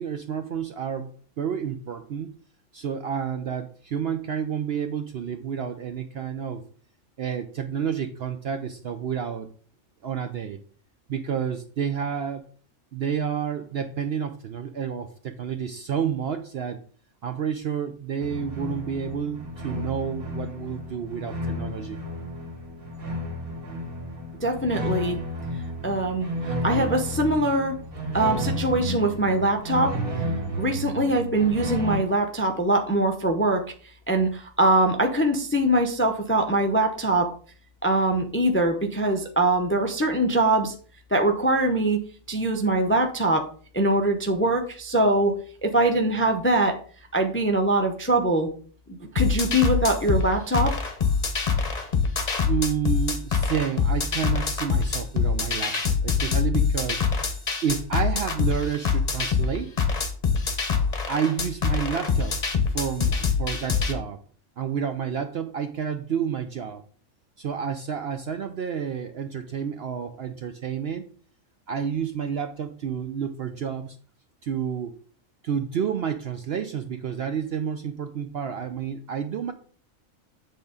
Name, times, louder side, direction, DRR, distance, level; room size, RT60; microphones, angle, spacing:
voice 1, 0.0-2.3 2.7-6.6 7.2-9.5 10.0-10.6 11.1-12.4 12.9-16.8 17.2-22.0 52.5-57.1 57.6-59.7 61.1-62.4 62.7-64.2 64.6-66.8 67.4-71.1 71.7-74.0 74.4-75.0 75.4-79.5, right 7 dB, 65° right, 8 dB, 0.6 m, -30 dB
sound 1, 18.2-32.0, equal, 90° right, 2.5 m, -32 dB
voice 2, 24.4-25.2 25.8-27.8 28.1-30.0 30.6-33.6 34.1-37.3 37.8-40.7 41.1-42.0 42.3-43.5 43.7-45.3 45.6-46.8 47.1-48.5 49.1-50.7, right 1 dB, 15° left, 4 dB, 0.4 m, -22 dB
sound 2, 49.2-63.9, left 5 dB, 35° left, 0.9 m, -25 dB
7.9 x 3.6 x 4.9 m, 0.44 s
omnidirectional pair, 1.5 m